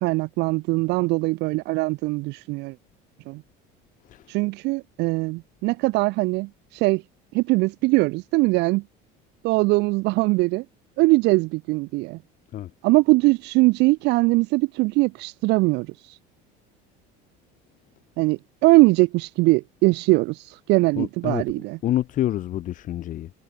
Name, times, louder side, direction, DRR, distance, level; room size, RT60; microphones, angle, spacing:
voice 1, 0.0-2.8 3.3-3.4 4.3-7.0 7.3-8.8 9.4-10.6 11.0-12.2 12.8-16.2 18.2-21.8, right 23 dB, 65° right, 0.6 m, -21 dB
voice 2, 20.9-21.4 21.8-23.3, left 13 dB, 45° left, 1.3 m, -27 dB
cardioid pair, 140°, 19 cm